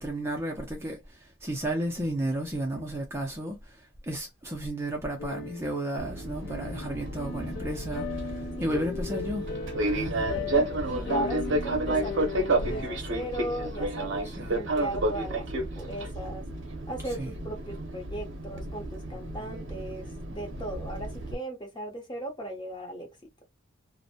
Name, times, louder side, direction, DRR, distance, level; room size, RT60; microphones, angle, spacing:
voice 1, 0.0-9.5 9.9-10.2 14.2-14.6 17.0-17.4, right 1 dB, 15° right, 0.5 m, -33 dB
sound 1, 5.2-13.0, left 6 dB, 55° left, 0.4 m, -38 dB
Fixed-wing aircraft airplane, 6.0-21.3, right 2 dB, 65° right, 0.6 m, -31 dB
voice 2, 10.2-16.5 16.9-23.1, right 1 dB, 25° left, 0.8 m, -37 dB
2.6 x 2.0 x 2.7 m
head